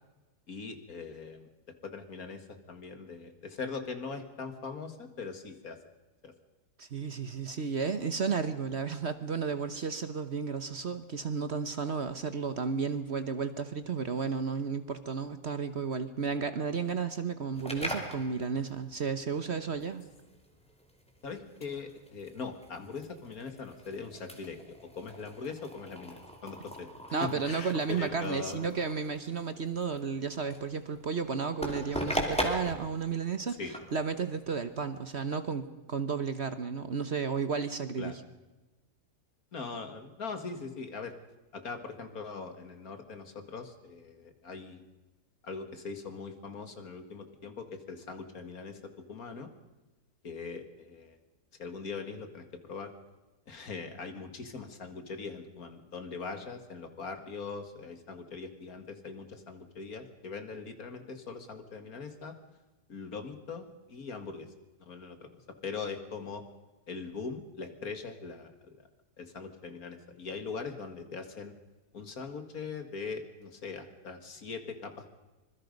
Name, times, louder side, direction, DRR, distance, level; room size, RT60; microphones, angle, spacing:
voice 1, 0.5-1.5 1.8-5.8 6.2-6.3 21.2-24.6 24.9-26.9 27.2-28.6 33.6-33.7 38.0-38.2 39.5-41.2 41.5-44.8 45.4-48.8 49.1-49.5 50.2-51.2 51.6-52.9 53.5-62.3 62.9-64.5 64.8-65.3 65.6-66.4 66.9-68.5 69.2-71.5 71.9-75.1, left 4 dB, 60° left, 7 dB, 2.4 m, -41 dB
voice 2, 6.8-20.0 27.1-33.6 33.9-38.2, right 5 dB, 45° right, 11 dB, 1.2 m, -33 dB
sound 1, 17.5-35.2, equal, 5° left, 2.8 m, -40 dB
25.5 x 21.5 x 5.4 m, 1.1 s
omnidirectional pair, 1.7 m